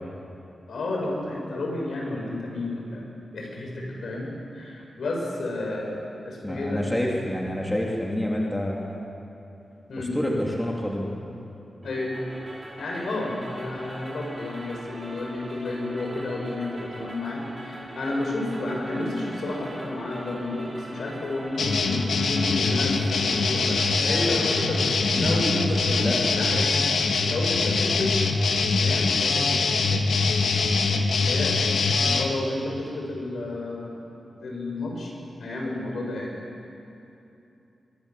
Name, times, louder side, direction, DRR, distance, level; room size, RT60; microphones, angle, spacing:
voice 1, 0.7-3.0 3.3-6.8 9.9-10.1 11.8-12.2 12.8-24.9 25.1-26.0 26.3-26.8 27.3-28.1 28.8-29.5 31.1-31.5 32.0-34.0 34.4-35.1 35.4-36.3, left 2 dB, 70° left, -1 dB, 6.2 m, -31 dB
voice 2, 6.4-9.0 10.0-11.1 24.1-24.3 25.2-25.5 26.0-26.2, left 1 dB, 10° left, -2 dB, 2.3 m, -28 dB
sound 1, 11.8-24.7, right 1 dB, 25° right, 4.8 m, -42 dB
sound 2, 21.6-32.3, left 4 dB, 90° left, 1.7 m, -23 dB
23.0 x 23.0 x 7.4 m, 2.8 s
wide cardioid pair, 170°, 0 cm